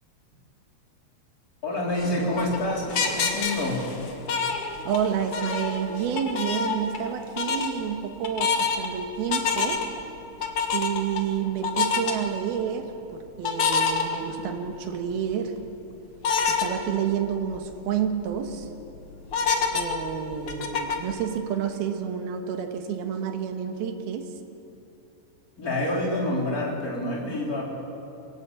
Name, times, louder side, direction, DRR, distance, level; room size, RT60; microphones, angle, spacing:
voice 1, 1.6-3.8 25.6-27.6, left 1 dB, 20° left, -2 dB, 3.9 m, -27 dB
sound 1, 1.9-5.1 5.3-7.1 7.4-7.7 8.2-8.9 9.3-10.0 10.4-11.2 11.6-12.1 13.4-14.6 15.1-15.2 16.2-16.7 17.2-17.3 17.5-17.6 18.1-18.5 19.3-21.1, left 5 dB, 50° left, 1.8 m, -26 dB
voice 2, 4.8-9.8 10.7-15.5 16.5-18.7 19.7-24.3, right 8 dB, 75° right, 6 dB, 3.2 m, -29 dB
23.5 x 17.5 x 8.3 m, 2.9 s
omnidirectional pair, 4.6 m